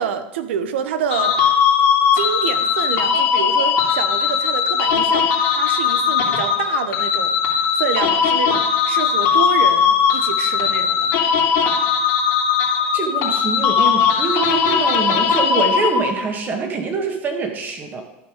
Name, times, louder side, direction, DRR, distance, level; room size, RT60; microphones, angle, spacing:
voice 1, 0.0-1.4 2.1-7.3 7.7-11.2, right 8 dB, 80° right, 11 dB, 1.0 m, -27 dB
sound 1, 1.1-16.3, left 7 dB, 60° left, 2.3 m, -18 dB
voice 2, 12.9-18.0, right 4 dB, 30° right, 4 dB, 1.9 m, -24 dB
12.0 x 5.8 x 5.1 m, 0.94 s
supercardioid pair, 120°, 6 cm